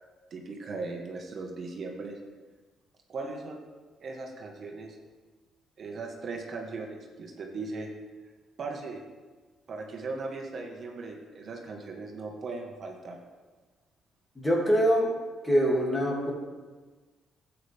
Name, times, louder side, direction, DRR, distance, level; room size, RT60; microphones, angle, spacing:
voice 1, 0.3-2.2 3.1-3.6 4.0-5.0 5.8-7.9 8.6-9.0 9.7-13.2, right 3 dB, 55° right, 0 dB, 1.7 m, -38 dB
voice 2, 14.4-15.1 15.4-16.3, equal, 15° left, -2 dB, 2.9 m, -24 dB
12.5 x 8.7 x 3.7 m, 1.3 s
cardioid pair, 90°, 0 cm